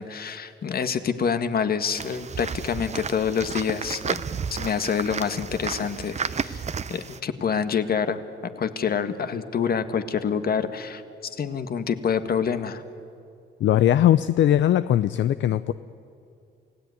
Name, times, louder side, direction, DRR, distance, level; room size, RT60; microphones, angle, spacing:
voice 1, 0.0-4.2 4.5-6.6 6.9-8.2 8.6-11.0 11.4-12.8, left 7 dB, 50° left, 10 dB, 1.7 m, -27 dB
sound 1, 2.0-7.2, right 6 dB, 35° right, 0.9 m, -32 dB
voice 2, 13.6-15.7, left 11 dB, 65° left, 13 dB, 0.6 m, -20 dB
28.5 x 17.0 x 9.5 m, 2.5 s
cardioid pair, 90°, 20 cm